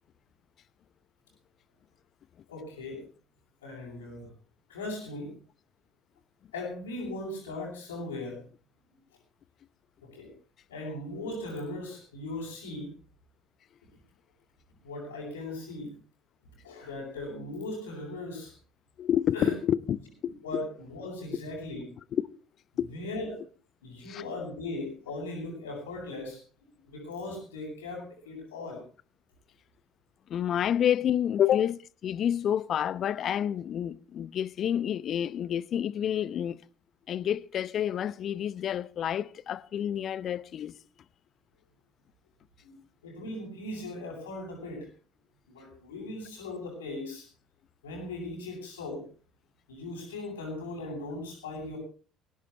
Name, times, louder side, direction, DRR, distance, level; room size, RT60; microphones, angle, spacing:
voice 1, 2.5-3.1 3.6-4.3 4.7-5.3 6.5-8.4 10.0-10.3 10.7-12.9 14.8-16.0 16.6-18.5 19.3-19.5 20.4-21.8 22.9-23.4 23.8-26.4 26.9-28.8 42.6-44.9 45.5-47.3 47.8-49.0 49.7-51.8, left 2 dB, 75° left, 7.9 m, -38 dB
voice 2, 19.0-20.0 20.2-20.3 22.1-22.2 22.8-22.9 24.1-24.2 30.3-36.6 37.1-40.7, left 10 dB, 45° left, 0.8 m, -28 dB
22.0 x 18.0 x 3.2 m
figure-of-eight pair, 55°, 0 cm